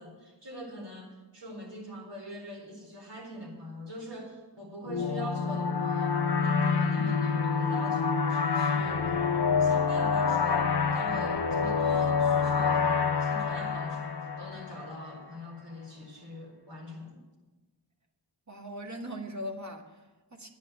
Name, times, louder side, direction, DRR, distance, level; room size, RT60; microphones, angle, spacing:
voice 1, 0.0-9.2 9.6-17.2, equal, 65° right, 0 dB, 4.3 m, -43 dB
sound 1, 4.9-15.2, left 5 dB, 55° left, 1.0 m, -27 dB
voice 2, 18.5-20.5, equal, 35° right, 2 dB, 1.9 m, -40 dB
10.5 x 8.8 x 9.3 m, 1.3 s
wide cardioid pair, 95°, 46 cm